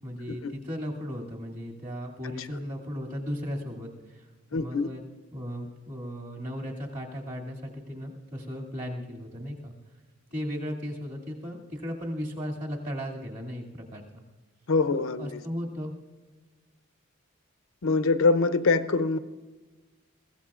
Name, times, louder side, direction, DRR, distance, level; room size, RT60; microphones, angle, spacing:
voice 1, 0.0-5.0 5.3-9.7 10.3-14.2 14.9-15.9, equal, 35° right, -2 dB, 2.3 m, -36 dB
voice 2, 4.5-4.9 14.7-15.4 17.8-19.2, left 3 dB, 70° left, 11 dB, 0.6 m, -24 dB
22.0 x 16.0 x 2.5 m, 1.3 s
head